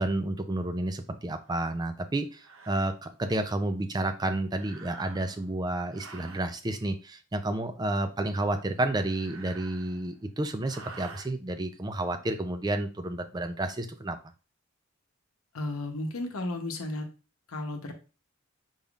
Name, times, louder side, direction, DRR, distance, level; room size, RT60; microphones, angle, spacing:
voice 1, 0.0-14.2, right 2 dB, 20° right, 8 dB, 0.4 m, -30 dB
sound 1, 1.5-1.6 2.4-2.9 4.5-5.5 5.9-6.5 8.7-10.2 10.6-11.3, right 4 dB, 65° right, 0.7 m, -48 dB
voice 2, 15.5-17.1 17.5-17.9, left 2 dB, 80° left, 3 dB, 0.9 m, -33 dB
5.4 x 3.5 x 2.4 m, 0.33 s
head